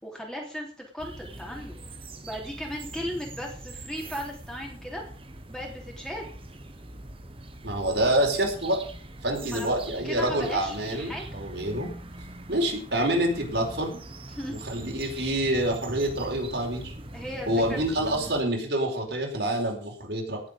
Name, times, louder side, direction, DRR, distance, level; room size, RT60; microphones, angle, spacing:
voice 1, 0.0-1.8 2.2-5.0 5.5-6.3 9.4-11.4 14.3-14.6 17.1-18.4, equal, 5° left, -1 dB, 3.3 m, -37 dB
sound 1, 1.0-18.4, right 2 dB, 30° right, 1.5 m, -42 dB
voice 2, 7.6-8.8 9.2-11.9 12.5-14.0 14.5-16.9 17.5-20.4, right 1 dB, 70° right, 1 dB, 4.6 m, -27 dB
18.0 x 7.8 x 5.2 m, 0.41 s
head